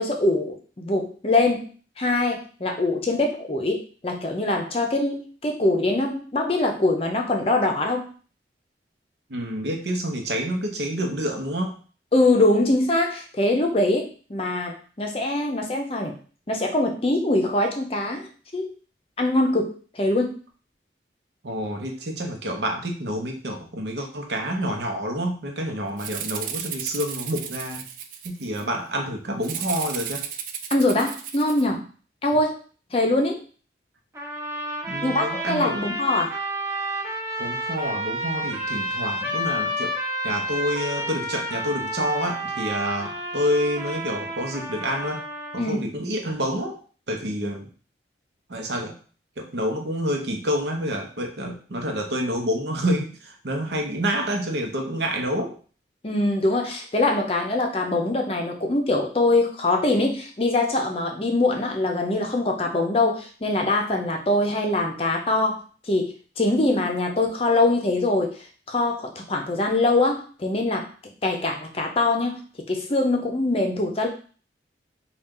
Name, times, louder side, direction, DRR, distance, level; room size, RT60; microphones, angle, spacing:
voice 1, 0.0-1.7 2.0-8.1 12.1-16.2 16.5-18.7 19.2-20.4 30.7-31.8 32.2-32.6 32.9-33.4 35.0-36.3 45.6-45.9 56.0-65.6 65.9-68.4 68.7-70.9 71.2-72.4 72.7-74.1, left 2 dB, 35° left, 3 dB, 0.6 m, -23 dB
voice 2, 9.3-11.8 21.4-27.8 28.2-30.3 34.9-35.8 37.4-40.0 40.2-45.2 45.5-46.8 47.1-47.7 48.5-48.9 49.4-55.6, equal, 75° right, 2 dB, 0.8 m, -28 dB
Rattle (instrument), 26.0-28.6 29.4-31.6, right 8 dB, 50° right, 0.4 m, -34 dB
sound 1, 34.1-45.7, equal, 15° right, 0.7 m, -30 dB
4.2 x 2.4 x 3.7 m, 0.40 s
head